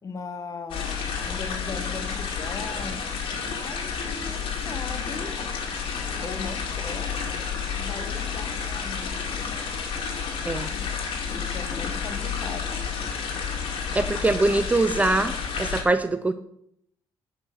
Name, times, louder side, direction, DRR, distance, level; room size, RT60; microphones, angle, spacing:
voice 1, 0.0-3.1 3.4-5.6 6.2-7.2 7.7-9.4 10.6-12.9, left 4 dB, 35° left, 7 dB, 1.3 m, -39 dB
sound 1, 0.7-15.8, left 6 dB, 65° left, 2.1 m, -30 dB
voice 2, 13.9-16.3, right 2 dB, 15° right, 11 dB, 0.5 m, -23 dB
11.0 x 5.0 x 5.8 m, 0.72 s
cardioid pair, 115°, 9 cm